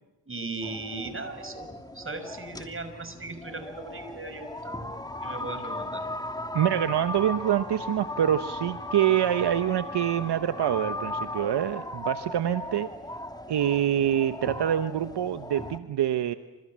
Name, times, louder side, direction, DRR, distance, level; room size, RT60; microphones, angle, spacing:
voice 1, 0.3-6.1, right 3 dB, 30° right, 9 dB, 6.0 m, -38 dB
sound 1, 0.6-15.8, left 2 dB, 10° left, 2.9 m, -37 dB
voice 2, 6.5-12.9 13.5-16.3, right 10 dB, 70° right, 10 dB, 1.2 m, -26 dB
28.5 x 27.5 x 7.6 m, 1.1 s
cardioid pair, 70°, 42 cm